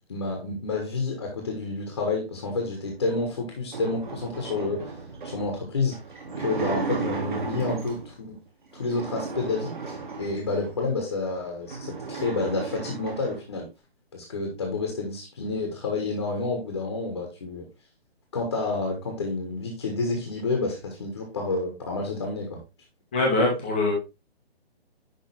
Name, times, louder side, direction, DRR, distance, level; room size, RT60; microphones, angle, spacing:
voice 1, 0.1-4.8 5.2-6.0 6.4-8.4 8.7-13.7 14.1-17.6 18.3-22.6, left 3 dB, 25° left, 1 dB, 1.5 m, -29 dB
sound 1, 3.0-8.2 8.7-10.8 11.3-11.4 11.6-13.4, right 4 dB, 50° right, 2.4 m, -34 dB
voice 2, 23.1-23.9, left 2 dB, 10° left, -1 dB, 1.1 m, -22 dB
10.5 x 3.5 x 3.4 m, 0.28 s
hypercardioid pair, 180°, 32 cm